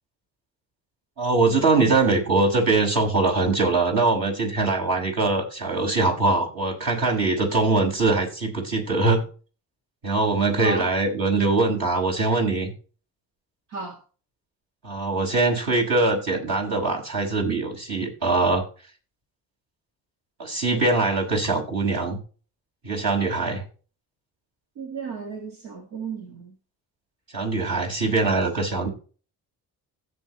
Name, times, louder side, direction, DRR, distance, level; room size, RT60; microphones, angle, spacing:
voice 1, 1.2-9.2 10.0-12.7 14.8-18.7 20.4-22.2 22.8-23.6 27.3-28.9, right 3 dB, 60° right, 6.1 m, -22 dB
voice 2, 10.6-10.9 13.7-14.0 24.8-26.5, right 4 dB, 90° right, 2.2 m, -34 dB
16.5 x 7.2 x 3.1 m
supercardioid pair, 55°, 40 cm